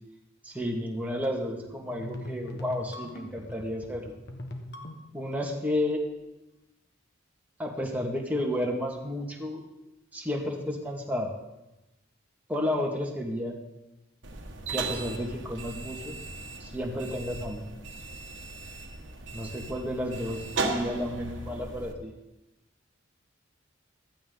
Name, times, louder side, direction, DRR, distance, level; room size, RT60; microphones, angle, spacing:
voice 1, 0.4-4.1 5.1-6.0 7.6-9.7 10.1-11.3 12.5-13.5 14.7-16.2 16.6-17.7 19.3-22.1, left 1 dB, 10° right, -1 dB, 2.1 m, -32 dB
sound 1, 1.9-5.3, left 1 dB, 60° left, 1.7 m, -40 dB
sound 2, 14.2-21.9, right 3 dB, 70° right, 1.6 m, -37 dB
15.5 x 13.5 x 4.0 m, 0.96 s
head